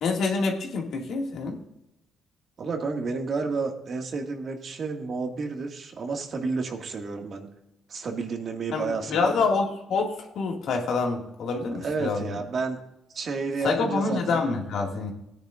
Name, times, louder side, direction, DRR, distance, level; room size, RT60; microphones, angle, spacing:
voice 1, 0.0-1.6 8.7-12.3 13.6-15.1, left 4 dB, 70° left, 1 dB, 2.1 m, -27 dB
voice 2, 2.6-7.5 7.9-9.4 11.8-12.8 13.1-14.4, right 4 dB, 55° right, 2 dB, 1.9 m, -31 dB
17.0 x 9.9 x 2.5 m, 0.85 s
cardioid pair, 90°, 0 cm